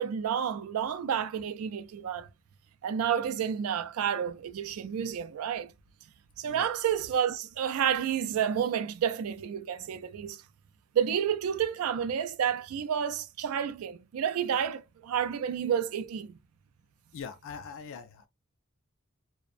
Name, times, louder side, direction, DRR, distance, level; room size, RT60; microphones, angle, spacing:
voice 1, 0.0-2.3 2.8-5.7 6.4-10.4 10.9-16.4, right 8 dB, 80° right, 0.3 m, -30 dB
voice 2, 17.1-18.3, left 6 dB, 65° left, 0.4 m, -42 dB
2.5 x 2.0 x 2.4 m
head